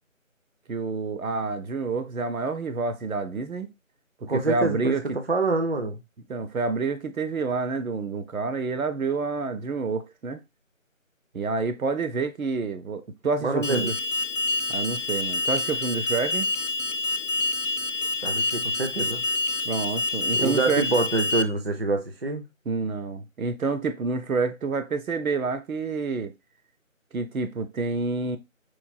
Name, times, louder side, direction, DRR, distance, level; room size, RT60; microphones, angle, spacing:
voice 1, 0.7-3.7 4.3-5.2 6.3-10.4 11.3-13.9 14.7-16.5 19.6-20.9 22.7-26.3 27.1-28.4, right 4 dB, 90° right, 0.7 m, -28 dB
voice 2, 4.2-6.0 13.4-13.9 18.2-19.2 20.3-22.4, right 3 dB, 50° right, 0.5 m, -26 dB
Alarm, 13.6-21.4, left 3 dB, 65° left, 0.6 m, -27 dB
4.5 x 2.7 x 2.2 m
figure-of-eight pair, 175°, 41 cm